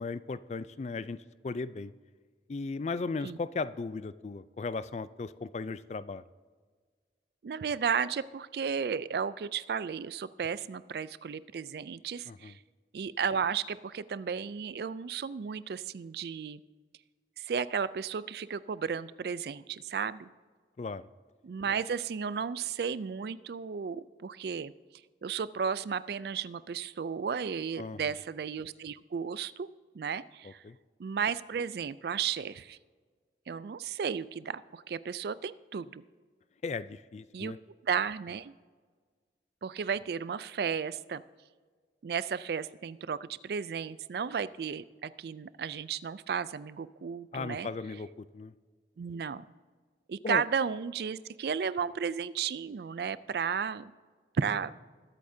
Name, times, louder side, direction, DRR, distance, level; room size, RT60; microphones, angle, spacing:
voice 1, 0.0-1.9 2.5-6.2 12.3-12.5 20.8-21.1 27.8-28.1 30.4-30.8 36.6-37.6 47.3-48.5 50.2-50.4, left 4 dB, 40° left, 15 dB, 0.3 m, -37 dB
voice 2, 7.4-12.5 12.9-16.6 17.4-20.3 21.4-24.7 25.2-29.7 29.9-30.6 31.0-32.8 33.5-36.0 37.3-37.5 37.8-38.5 39.6-41.2 42.0-47.7 49.0-49.4 50.1-53.9 54.4-54.7, right 6 dB, 60° right, 17 dB, 0.3 m, -34 dB
20.5 x 8.5 x 2.7 m, 1.5 s
head